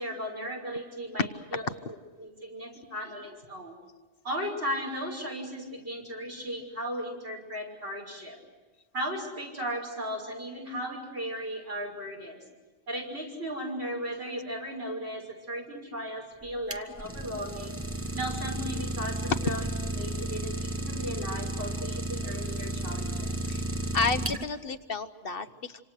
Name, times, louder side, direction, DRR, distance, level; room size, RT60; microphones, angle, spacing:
voice 1, 0.0-1.7 2.2-3.8 4.2-8.4 8.9-12.4 12.9-17.8 18.1-19.6 20.0-23.3, equal, 75° right, 0 dB, 6.6 m, -36 dB
Idling, 16.4-24.8, right 2 dB, 15° right, 1.1 m, -33 dB
voice 2, 23.9-25.8, left 4 dB, 60° left, 10 dB, 1.2 m, -31 dB
27.0 x 26.5 x 6.5 m, 1.3 s
omnidirectional pair, 1.1 m